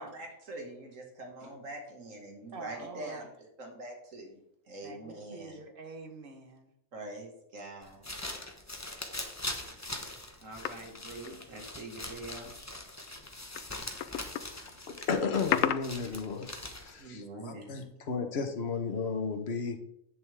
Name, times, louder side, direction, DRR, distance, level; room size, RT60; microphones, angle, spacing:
voice 1, 0.0-3.3 3.6-5.6 6.9-8.0 10.4-12.5 17.0-17.7, right 1 dB, 90° right, 2 dB, 2.3 m, -44 dB
voice 2, 2.5-3.3 4.8-6.7, right 3 dB, 45° right, 6 dB, 1.3 m, -46 dB
sound 1, 7.8-17.1, left 1 dB, 15° left, 0.9 m, -42 dB
sound 2, 10.7-12.0 12.3-12.4 13.3-16.5 16.9-17.0, left 10 dB, 90° left, 1.0 m, -34 dB
voice 3, 14.9-16.5 16.8-19.8, left 5 dB, 55° left, 6 dB, 1.3 m, -33 dB
10.5 x 8.3 x 3.5 m, 0.78 s
omnidirectional pair, 1.3 m